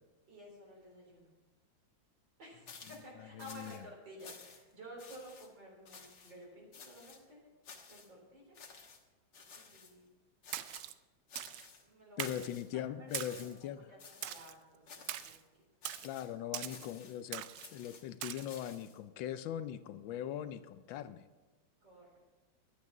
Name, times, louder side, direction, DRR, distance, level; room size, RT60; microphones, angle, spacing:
voice 1, 0.3-1.3 2.4-7.4 7.9-8.6 9.5-10.0 11.8-12.2 12.7-14.8 15.1-15.4 21.8-22.1, equal, 60° right, -3 dB, 4.7 m, -53 dB
sound 1, 2.7-3.1 3.4-3.8 4.2-4.7 5.0-5.5 5.9-6.3 6.7-7.2 7.6-8.1 8.6-9.0 9.3-9.9 10.4-11.0 11.3-11.8 12.2-12.7 13.1-13.7 14.0-14.5 14.9-15.4 15.8-16.3 16.7-17.2 17.6-19.0, left 5 dB, 55° left, 1.9 m, -54 dB
voice 2, 3.2-3.8 12.2-13.9 16.0-17.5 17.7-21.3, left 10 dB, 75° left, 12 dB, 1.3 m, -41 dB
Splash splatter, 10.5-10.9 11.4-11.7 12.2-12.5 13.1-13.5 14.2-14.5 15.1-15.4 15.8-16.1 16.5-16.9 17.3-17.7 18.2-18.5, right 12 dB, 85° right, 0.8 m, -41 dB
11.5 x 9.0 x 6.0 m, 1.2 s
omnidirectional pair, 2.2 m